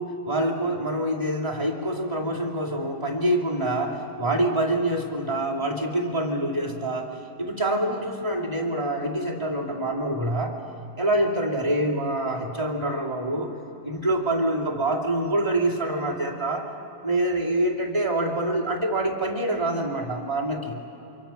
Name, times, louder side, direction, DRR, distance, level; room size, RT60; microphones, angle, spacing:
voice 1, 0.0-7.1 7.4-10.6 11.0-13.5 13.8-16.7 17.0-20.8, right 1 dB, 15° right, -3 dB, 2.5 m, -26 dB
28.0 x 24.5 x 5.8 m, 2.9 s
omnidirectional pair, 2.1 m